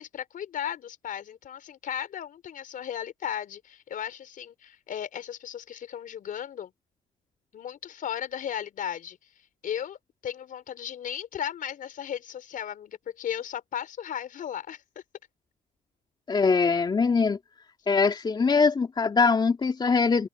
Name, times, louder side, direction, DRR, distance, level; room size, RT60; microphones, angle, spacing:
voice 1, 0.0-6.7 7.5-9.3 9.6-15.0, left 9 dB, 55° left, 4.9 m, -36 dB
voice 2, 16.3-17.4 17.9-20.3, left 5 dB, 25° left, 3.0 m, -22 dB
open air
cardioid pair, 110°, 17 cm